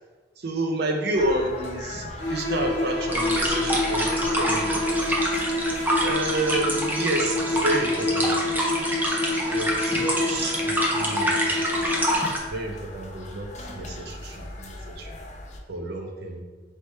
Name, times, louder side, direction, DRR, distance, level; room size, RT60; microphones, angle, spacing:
voice 1, 0.4-4.9 5.5-5.6 6.0-8.5 9.5-11.6 12.5-15.2 15.7-16.4, right 2 dB, 65° right, 3 dB, 0.6 m, -30 dB
sound 1, 1.1-15.6, left 1 dB, 40° left, 0.5 m, -41 dB
sound 2, 2.2-12.4, left 2 dB, 75° left, 1.3 m, -28 dB
sound 3, 3.1-12.4, equal, 10° right, 0.6 m, -26 dB
3.3 x 3.1 x 4.3 m, 1.3 s
head